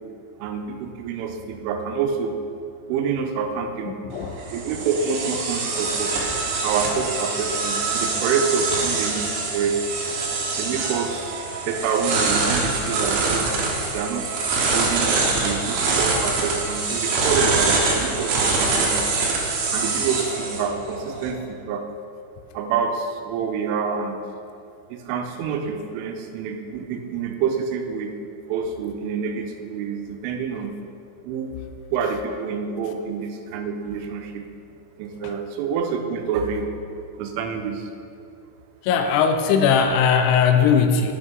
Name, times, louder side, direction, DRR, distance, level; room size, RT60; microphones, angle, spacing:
voice 1, 0.4-2.3 2.9-4.0 4.5-6.1 6.6-9.8 10.6-13.5 13.9-14.4 14.7-19.0 19.7-21.8 22.5-24.2 24.9-28.1 28.5-30.7 31.2-31.5 31.9-34.4 35.0-36.7 37.2-37.9, right 6 dB, 90° right, 4 dB, 3.3 m, -27 dB
voice 2, 3.9-4.3 15.8-15.9 35.2-35.3 38.8-41.1, left 6 dB, 85° left, 6 dB, 2.8 m, -19 dB
sound 1, 4.1-21.3, right 3 dB, 75° right, 3.2 m, -24 dB
9.3 x 6.1 x 5.3 m, 2.4 s
omnidirectional pair, 5.5 m